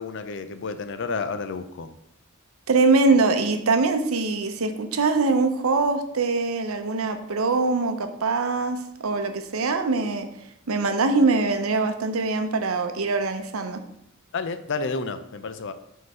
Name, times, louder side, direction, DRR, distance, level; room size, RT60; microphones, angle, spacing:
voice 1, 0.0-1.9 14.3-15.7, left 4 dB, 60° left, 11 dB, 0.5 m, -30 dB
voice 2, 2.7-10.3 10.7-13.8, right 3 dB, 80° right, 7 dB, 0.7 m, -23 dB
5.3 x 3.9 x 5.4 m, 0.78 s
head